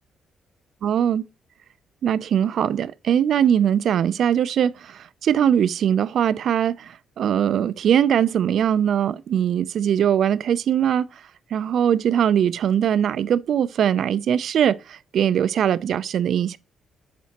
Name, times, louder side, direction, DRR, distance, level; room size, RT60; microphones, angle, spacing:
voice 1, 0.8-1.3 2.0-11.1 11.5-16.6, right 9 dB, 65° right, 0.3 m, -21 dB
8.4 x 4.3 x 2.8 m
cardioid pair, 90°, 0 cm